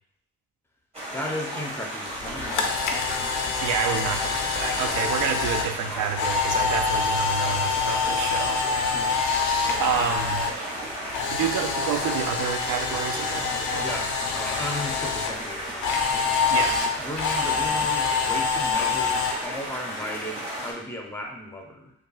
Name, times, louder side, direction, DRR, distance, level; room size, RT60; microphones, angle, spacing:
sound 1, 0.9-20.7, right 1 dB, 20° right, 1.3 m, -34 dB
voice 1, 1.1-3.0 4.8-5.1 5.9-6.1 8.9-10.1 13.3-21.9, left 1 dB, 10° left, 0 dB, 0.7 m, -36 dB
Camera, 2.2-10.5 10.8-15.3 15.8-19.3, left 5 dB, 85° left, 0.6 m, -26 dB
voice 2, 3.6-8.6 9.8-10.5 11.3-14.0 16.5-16.8, right 8 dB, 75° right, 7 dB, 0.5 m, -29 dB
5.3 x 2.4 x 2.4 m, 0.78 s
cardioid pair, 90°, 30 cm